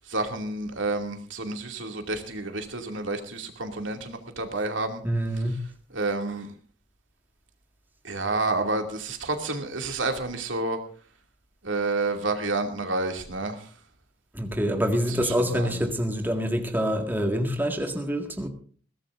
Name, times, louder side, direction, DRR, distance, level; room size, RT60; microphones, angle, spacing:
voice 1, 0.0-5.0 5.9-6.5 8.0-10.8 11.6-13.7 15.2-15.8, right 2 dB, 75° right, 2.6 m, -29 dB
voice 2, 5.0-5.6 14.3-18.5, equal, 10° right, 1.9 m, -26 dB
21.0 x 17.0 x 2.6 m
head